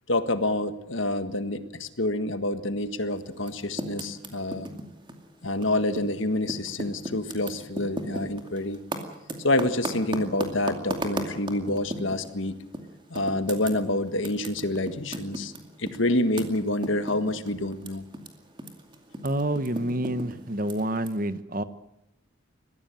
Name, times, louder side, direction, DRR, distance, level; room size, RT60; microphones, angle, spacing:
voice 1, 0.1-4.7 5.4-8.8 9.4-12.6 13.1-15.5 15.8-18.1, left 1 dB, 70° left, 10 dB, 1.6 m, -27 dB
Typing, 3.4-6.2 6.4-12.3 12.7-12.9 13.2-18.3 18.5-21.1, right 1 dB, 20° right, 2.4 m, -35 dB
voice 2, 19.2-21.6, right 1 dB, 40° right, 12 dB, 1.1 m, -28 dB
22.0 x 16.0 x 9.2 m, 0.87 s
head